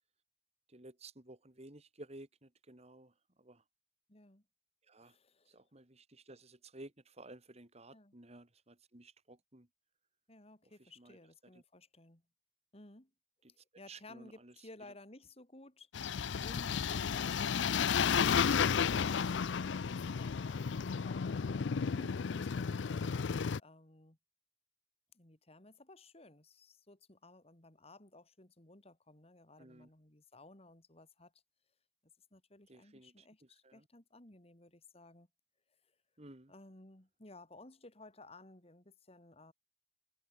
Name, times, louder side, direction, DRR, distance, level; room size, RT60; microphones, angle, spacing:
voice 1, 0.7-3.6 4.9-5.2 5.5-9.7 10.8-11.5 13.4-13.5 13.9-14.5 16.9-17.2 21.9-22.1 23.0-23.4 29.6-29.9 32.7-33.9 36.2-36.5, right 2 dB, 35° right, 2.6 m, -55 dB
voice 2, 4.1-4.4 5.0-5.6 7.9-8.2 10.3-12.2 12.7-13.1 13.5-24.2 25.1-31.3 32.3-35.3 36.5-39.5, left 2 dB, 35° left, 3.0 m, -57 dB
sound 1, 15.9-23.6, left 6 dB, 85° left, 0.5 m, -32 dB
head